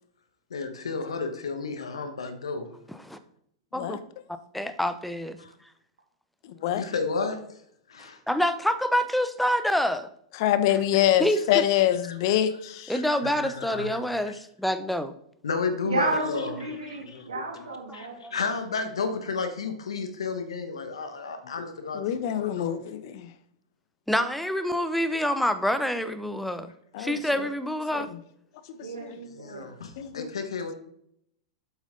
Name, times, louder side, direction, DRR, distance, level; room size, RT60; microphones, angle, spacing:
voice 1, 0.5-2.7 5.4-5.5 6.6-7.4 7.9-8.2 12.0-12.1 12.9-14.3 15.4-16.5 17.1-17.2 17.9-22.8 29.3-30.7, left 4 dB, 80° left, 1.2 m, -32 dB
voice 2, 2.9-3.2 3.7-4.0 4.5-5.4 8.3-10.1 11.2-11.6 12.9-15.1 18.2-18.3 24.1-26.7 27.0-28.1, equal, ahead, 0.7 m, -27 dB
voice 3, 10.4-12.9 21.9-23.3 26.9-27.2 27.9-28.2 29.0-29.1 30.0-30.3, left 12 dB, 55° left, 0.8 m, -25 dB
voice 4, 15.8-18.4 28.8-29.6, right 2 dB, 85° right, 2.6 m, -32 dB
7.9 x 6.2 x 3.8 m
hypercardioid pair, 105°, 3 cm